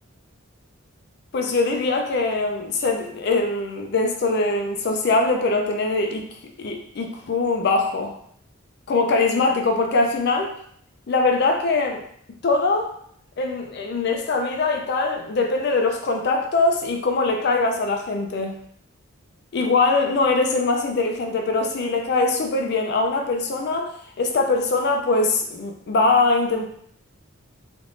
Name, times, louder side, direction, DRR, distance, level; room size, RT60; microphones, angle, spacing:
voice 1, 1.3-6.3 6.6-8.2 8.9-10.5 11.1-12.0 12.4-12.9 13.4-18.5 19.5-26.6, left 3 dB, 50° left, 3 dB, 0.4 m, -22 dB
3.4 x 3.0 x 2.5 m, 0.65 s
head